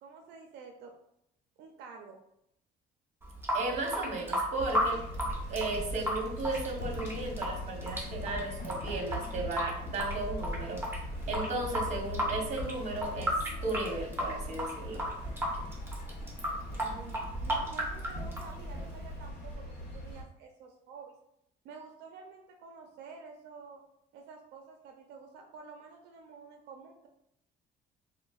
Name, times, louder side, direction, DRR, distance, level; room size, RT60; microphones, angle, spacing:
voice 1, 0.0-0.9 1.6-2.2 16.5-21.1 21.6-23.8 24.1-27.1, right 5 dB, 85° right, 3 dB, 0.4 m, -50 dB
Water tap faucet / Sink (filling or washing) / Drip, 3.2-19.2, equal, 15° right, 0.8 m, -35 dB
voice 2, 3.5-5.0 5.5-10.8 11.3-15.1, right 2 dB, 45° right, 2 dB, 0.8 m, -35 dB
sound 1, 4.5-20.2, left 1 dB, 75° left, 0.9 m, -41 dB
3.9 x 2.0 x 2.3 m, 0.78 s
cardioid pair, 110°, 17 cm